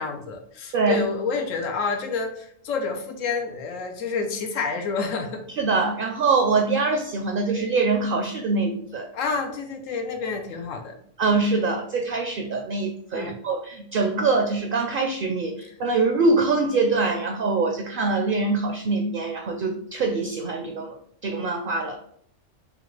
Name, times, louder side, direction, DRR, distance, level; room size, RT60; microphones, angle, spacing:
voice 1, 0.0-5.5 9.1-11.0 13.1-13.4, left 4 dB, 90° left, 4 dB, 1.1 m, -28 dB
voice 2, 0.7-1.0 5.5-9.1 11.2-21.0 21.2-22.0, right 3 dB, 60° right, 3 dB, 0.6 m, -24 dB
5.2 x 2.3 x 3.1 m, 0.63 s
omnidirectional pair, 1.3 m